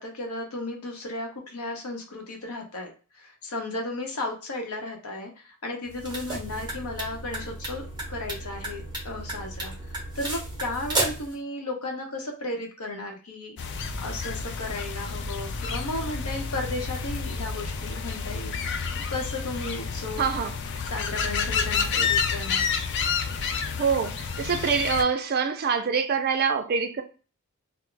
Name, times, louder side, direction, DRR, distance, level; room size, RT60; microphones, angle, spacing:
voice 1, 0.0-13.6 14.0-18.6 19.1-20.2 20.9-22.6, left 2 dB, 85° left, 0.8 m, -34 dB
sound 1, 5.9-11.3, right 2 dB, 20° right, 0.8 m, -33 dB
sound 2, 13.6-25.0, left 6 dB, 55° left, 0.4 m, -30 dB
sound 3, 13.7-21.9, equal, 30° left, 0.9 m, -40 dB
voice 2, 20.2-20.5 23.8-27.0, right 6 dB, 45° right, 0.4 m, -25 dB
2.3 x 2.0 x 3.8 m
head